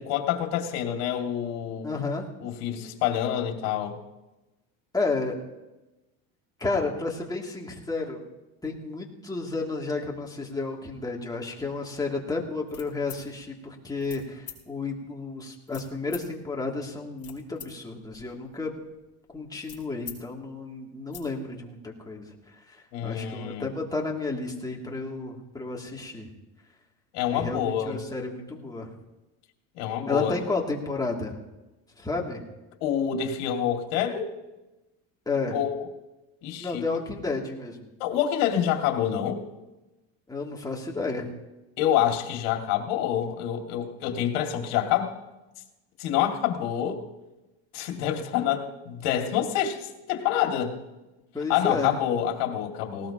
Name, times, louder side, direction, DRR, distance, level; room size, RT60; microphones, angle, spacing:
voice 1, 0.0-2.0 2.4-4.0 22.9-23.7 27.1-28.0 29.7-30.4 32.8-34.3 35.5-35.7 36.4-36.8 38.0-39.4 41.8-45.2 46.0-47.0 47.7-50.8 51.5-53.1, left 10 dB, 75° left, 3 dB, 2.4 m, -27 dB
voice 2, 1.8-2.3 4.9-5.4 6.6-8.2 8.6-18.7 19.3-22.3 22.7-26.3 27.3-28.9 30.1-31.4 32.0-32.4 35.3-35.6 36.6-37.9 40.3-41.3 51.3-51.9, left 3 dB, 10° left, -1 dB, 2.7 m, -31 dB
sound 1, 12.7-13.2 14.0-14.2 14.5-14.6 15.7-16.3 16.9-17.7 18.0-20.2 20.5-20.6 20.9-21.3, left 9 dB, 35° left, 5.4 m, -44 dB
19.0 x 17.5 x 3.0 m, 1.0 s
supercardioid pair, 115°, 38 cm